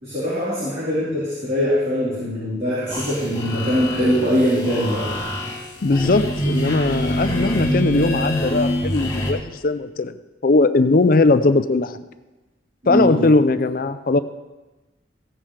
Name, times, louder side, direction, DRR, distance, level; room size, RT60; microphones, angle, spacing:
voice 1, 0.0-5.0 12.9-13.2, equal, 45° right, -11 dB, 4.1 m, -22 dB
sound 1, 2.9-9.3, equal, 20° left, 2.1 m, -25 dB
voice 2, 5.8-10.2 10.4-12.0 12.9-14.2, left 3 dB, 50° left, 12 dB, 0.5 m, -19 dB
15.5 x 9.0 x 3.3 m, 1.2 s
head